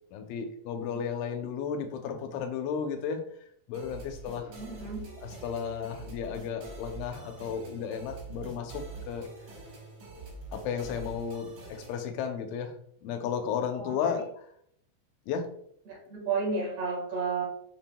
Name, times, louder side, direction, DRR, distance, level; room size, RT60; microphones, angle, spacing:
voice 1, 0.1-3.2 3.7-4.5 5.2-9.3 10.5-12.7 13.0-14.2 15.3-15.5, left 7 dB, 85° left, 5 dB, 3.2 m, -33 dB
sound 1, 3.7-12.1, right 3 dB, 80° right, 1.5 m, -45 dB
voice 2, 4.5-5.0 13.7-14.1 15.8-17.4, right 4 dB, 60° right, -2 dB, 1.7 m, -32 dB
7.1 x 5.9 x 2.3 m, 0.69 s
omnidirectional pair, 5.3 m